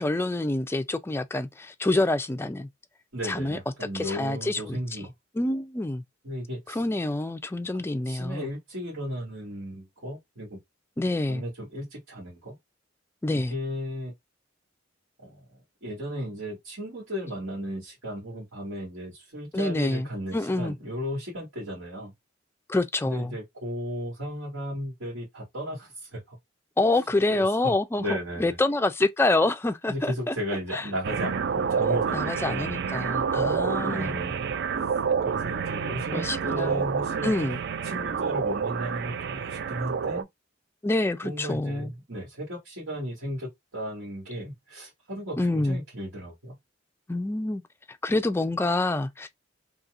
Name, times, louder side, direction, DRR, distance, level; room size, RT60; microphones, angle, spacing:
voice 1, 0.0-2.7 3.2-3.6 3.9-4.8 5.3-6.0 6.7-8.5 11.0-11.4 13.2-13.6 19.5-20.8 22.7-23.4 26.8-30.4 30.7-30.9 32.1-34.2 36.1-36.8 37.2-37.6 40.8-41.9 45.4-45.8 47.1-47.6 48.0-49.3, left 2 dB, 15° left, 0.3 m, -27 dB
voice 2, 3.1-5.1 6.2-6.8 8.1-10.6 11.3-12.5 13.3-14.1 15.2-15.4 15.8-22.1 23.0-26.4 27.3-28.6 29.9-32.8 33.8-34.4 35.2-37.3 37.8-40.3 41.2-46.6, equal, 80° right, 2.2 m, -35 dB
sound 1, 31.0-40.2, right 6 dB, 60° right, 0.4 m, -28 dB
4.1 x 2.9 x 2.5 m
head